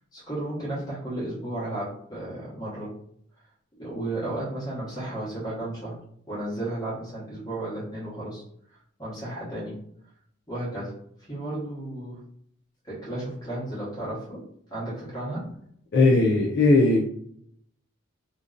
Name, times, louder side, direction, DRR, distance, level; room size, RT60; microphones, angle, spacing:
voice 1, 0.1-2.9 3.8-6.0 6.3-8.4 9.0-9.9 10.5-11.0 11.3-12.2 12.8-14.4 14.7-15.5, right 1 dB, 20° left, -8 dB, 1.1 m, -33 dB
voice 2, 15.9-17.0, left 2 dB, 50° left, -3 dB, 0.4 m, -18 dB
2.6 x 2.2 x 2.4 m, 0.67 s
head